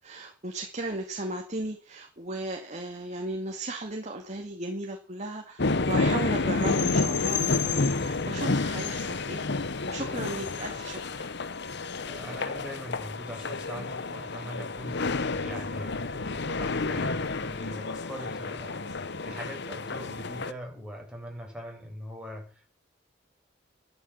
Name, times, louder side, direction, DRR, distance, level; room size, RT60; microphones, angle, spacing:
voice 1, 0.0-9.4 9.9-11.3, right 2 dB, 40° right, 3 dB, 2.3 m, -36 dB
sound 1, 5.6-20.5, left 3 dB, 60° left, 1.1 m, -30 dB
voice 2, 12.1-22.7, equal, 5° right, 0 dB, 7.0 m, -41 dB
13.0 x 13.0 x 7.2 m, 0.37 s
head